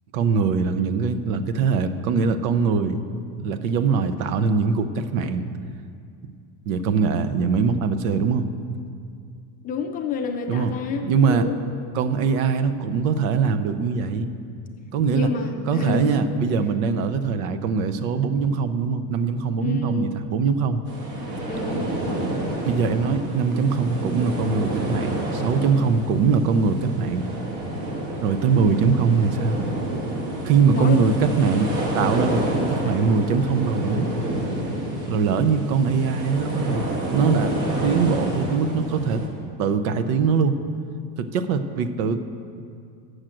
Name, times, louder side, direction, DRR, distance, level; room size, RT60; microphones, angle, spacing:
voice 1, 0.1-3.0 3.4-5.4 6.7-8.5 10.5-10.7 11.0-11.5 11.9-14.3 14.9-15.3 15.7-20.8 22.7-27.2 28.2-29.6 30.4-34.1 35.1-36.8 37.1-37.5 37.8-39.2 39.6-40.6 41.2-42.2, right 5 dB, 90° right, 10 dB, 0.8 m, -22 dB
voice 2, 9.6-11.6 15.1-16.1 19.6-20.1 21.5-21.9 30.7-31.1 32.4-32.5, left 4 dB, 20° left, 3 dB, 0.4 m, -29 dB
sound 1, 20.9-39.3, right 1 dB, 60° right, 1.9 m, -29 dB
8.8 x 6.4 x 7.6 m, 2.3 s
cardioid pair, 170°, 40 cm